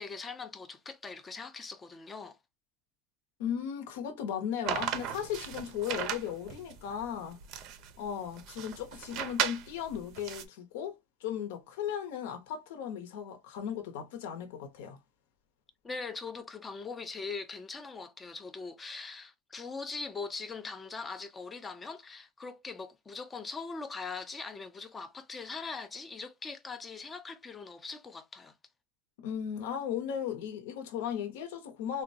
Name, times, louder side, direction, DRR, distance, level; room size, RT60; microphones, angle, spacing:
voice 1, 0.0-2.4 15.8-28.5, left 4 dB, 15° left, 0.4 m, -41 dB
voice 2, 3.4-7.4 8.0-15.0 29.2-32.0, left 9 dB, 75° left, 0.8 m, -36 dB
sound 1, 4.7-10.4, right 9 dB, 45° right, 0.5 m, -36 dB
3.8 x 2.2 x 2.6 m
supercardioid pair, 165°, 0 cm